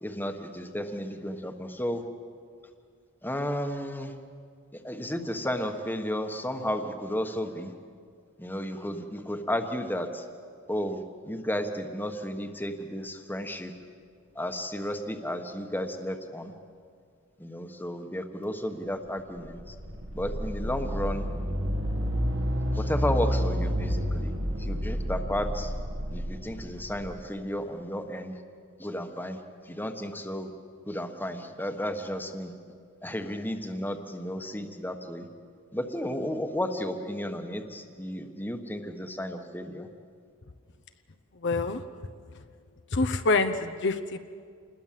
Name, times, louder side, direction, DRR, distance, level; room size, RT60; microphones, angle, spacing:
voice 1, 0.0-2.0 3.2-4.1 4.7-7.7 8.4-10.2 10.7-13.7 14.3-16.5 17.4-19.7 20.1-21.3 22.7-25.7 26.1-28.4 28.8-29.4 29.7-30.5 30.9-32.5 33.0-35.3 35.7-39.9, equal, 10° left, 6 dB, 1.3 m, -33 dB
sound 1, 19.2-27.2, equal, 65° right, 2.1 m, -30 dB
voice 2, 41.4-41.8 42.9-44.2, left 3 dB, 55° left, 7 dB, 0.9 m, -26 dB
27.5 x 21.0 x 7.6 m, 2.2 s
head